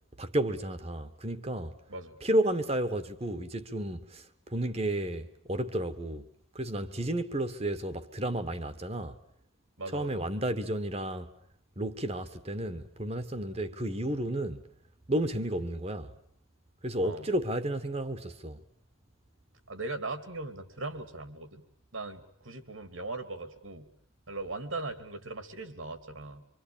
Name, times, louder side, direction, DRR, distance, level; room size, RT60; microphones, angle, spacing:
voice 1, 0.2-1.8 2.2-6.3 6.5-9.1 9.9-11.3 11.8-14.6 15.1-16.1 16.8-18.6, right 1 dB, 30° right, 1.4 m, -32 dB
voice 2, 9.8-10.3 17.0-17.3 19.7-21.6 21.9-23.9 24.3-26.4, right 2 dB, 80° right, 2.8 m, -39 dB
25.5 x 25.5 x 8.7 m
head